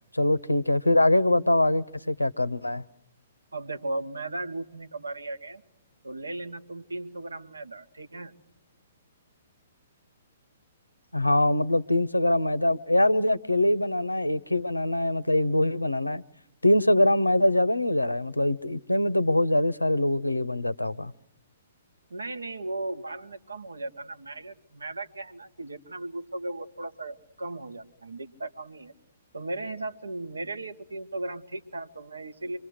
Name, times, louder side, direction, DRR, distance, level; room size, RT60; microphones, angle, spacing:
voice 1, 0.1-2.8 11.1-16.2 16.6-21.1, left 1 dB, 90° left, 0.9 m, -23 dB
voice 2, 3.5-5.6 6.0-8.3 22.1-28.9 29.3-32.6, right 2 dB, 80° right, 1.8 m, -36 dB
26.5 x 24.0 x 6.5 m
figure-of-eight pair, 120°, 0 cm